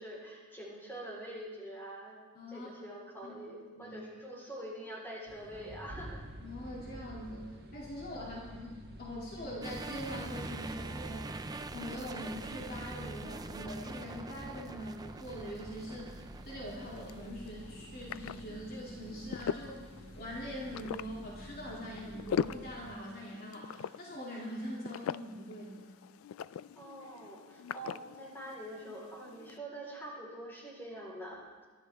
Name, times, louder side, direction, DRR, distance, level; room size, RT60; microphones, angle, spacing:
voice 1, 0.0-2.2 2.5-6.2 8.2-8.4 26.7-31.6, right 1 dB, 10° left, -4 dB, 4.2 m, -45 dB
voice 2, 2.3-2.7 3.2-3.3 3.8-4.0 6.4-11.3 11.7-19.8 20.1-25.9, equal, 45° left, -4 dB, 2.5 m, -43 dB
sound 1, 5.3-22.9, equal, 50° right, 1.4 m, -50 dB
sound 2, 9.6-17.3, right 3 dB, 20° right, 0.4 m, -44 dB
sound 3, 16.7-29.6, left 7 dB, 85° left, 0.3 m, -42 dB
23.0 x 12.5 x 3.5 m, 1.4 s
head